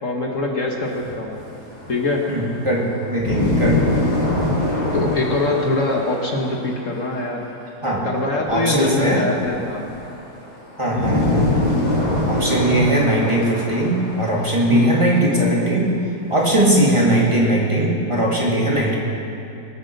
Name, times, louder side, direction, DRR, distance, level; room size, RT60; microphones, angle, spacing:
voice 1, 0.0-1.4 1.9-2.2 4.9-7.5 8.0-9.9 10.9-11.2 14.7-14.9 16.8-17.0, left 2 dB, 55° left, 0 dB, 1.7 m, -23 dB
sound 1, 0.9-7.2 8.5-14.9 15.2-15.3 16.4-17.2, left 2 dB, 85° left, 4.4 m, -24 dB
voice 2, 2.3-3.9 7.8-8.1 8.5-9.2 10.8-11.5 12.3-15.9 16.3-19.0, right 1 dB, 20° right, -4 dB, 2.5 m, -19 dB
22.0 x 8.0 x 6.7 m, 2.7 s
omnidirectional pair, 1.7 m